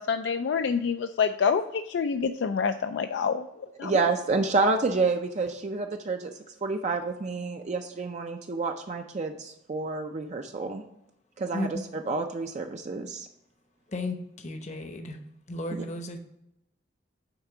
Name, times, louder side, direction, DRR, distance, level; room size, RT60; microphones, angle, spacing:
voice 1, 0.0-3.5 3.8-4.0, left 6 dB, 75° left, 8 dB, 0.3 m, -27 dB
voice 2, 3.8-6.3 6.6-10.8 11.4-13.3 15.7-15.9, right 3 dB, 40° right, 4 dB, 0.4 m, -29 dB
voice 3, 13.9-15.2 15.5-16.2, left 1 dB, 40° left, 6 dB, 0.8 m, -34 dB
8.9 x 3.6 x 4.9 m, 0.80 s
head